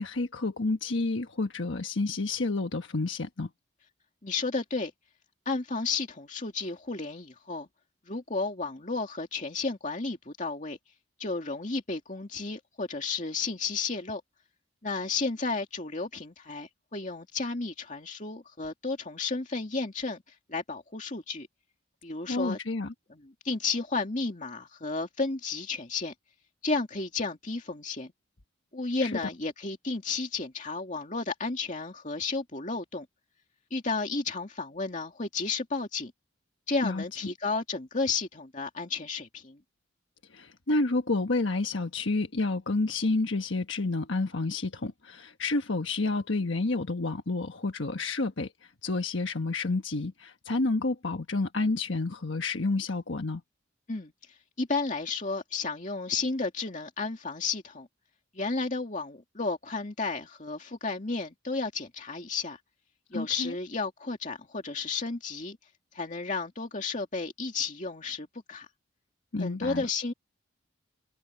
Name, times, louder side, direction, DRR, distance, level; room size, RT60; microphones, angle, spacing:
voice 1, 0.0-3.5 22.2-22.9 29.0-29.2 36.8-37.3 40.3-53.4 63.1-63.5 69.3-69.9, left 3 dB, 70° left, 1.3 m, -30 dB
voice 2, 4.2-4.9 5.5-7.7 8.1-10.8 11.2-14.2 14.8-20.2 20.5-21.5 22.0-22.6 23.4-26.1 26.6-28.1 28.7-33.1 33.7-36.1 36.7-39.6 53.9-54.1 54.6-57.9 58.3-62.6 63.1-65.6 65.9-68.7 69.4-70.1, left 3 dB, 40° left, 2.4 m, -32 dB
head